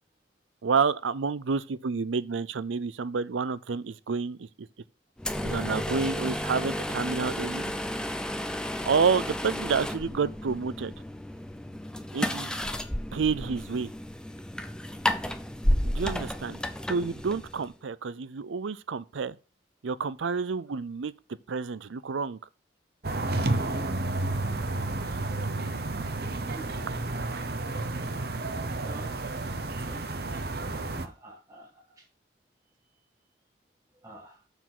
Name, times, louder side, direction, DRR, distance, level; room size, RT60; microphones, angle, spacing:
voice 1, 0.6-4.7 5.4-7.7 8.8-10.9 12.1-12.5 13.1-13.9 15.8-16.6 16.9-19.4 19.8-21.1 21.5-22.4 25.4-25.5, right 5 dB, 85° right, 0.5 m, -29 dB
sound 1, 5.2-17.7, left 1 dB, 5° left, 0.5 m, -32 dB
sound 2, 23.0-31.1, right 2 dB, 55° right, 0.9 m, -31 dB
voice 2, 28.8-29.1 29.7-30.0 30.4-30.5 31.0-32.0 34.0-34.4, right 1 dB, 15° right, 1.3 m, -47 dB
7.0 x 6.1 x 6.0 m
head